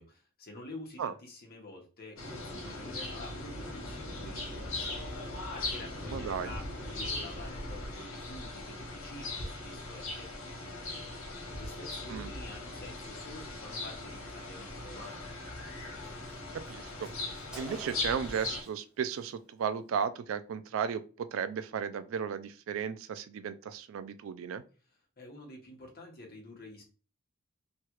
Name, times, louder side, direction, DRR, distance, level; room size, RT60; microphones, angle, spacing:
voice 1, 0.0-5.1 5.5-15.4 24.9-26.9, left 1 dB, 50° left, 1.0 m, -49 dB
sound 1, 2.2-18.6, left 2 dB, 80° left, 1.1 m, -39 dB
voice 2, 6.1-6.5 12.1-12.3 16.5-17.1 17.6-24.6, right 7 dB, 70° right, 0.3 m, -35 dB
Car, 15.1-15.2 15.5-15.6 15.8-18.8 19.0-19.3, right 2 dB, 5° right, 0.8 m, -50 dB
3.1 x 2.3 x 2.9 m
head